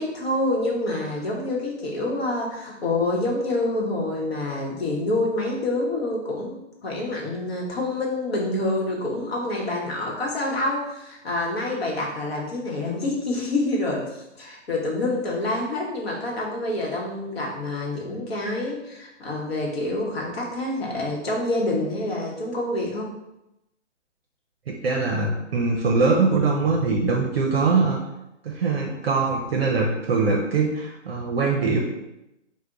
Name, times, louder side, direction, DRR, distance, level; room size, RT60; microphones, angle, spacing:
voice 1, 0.0-23.1, left 2 dB, 55° left, -2 dB, 1.0 m, -27 dB
voice 2, 24.7-28.0 28.4-31.8, right 4 dB, 55° right, 0 dB, 0.6 m, -22 dB
3.3 x 2.2 x 3.8 m, 0.90 s
hypercardioid pair, 160°, 37 cm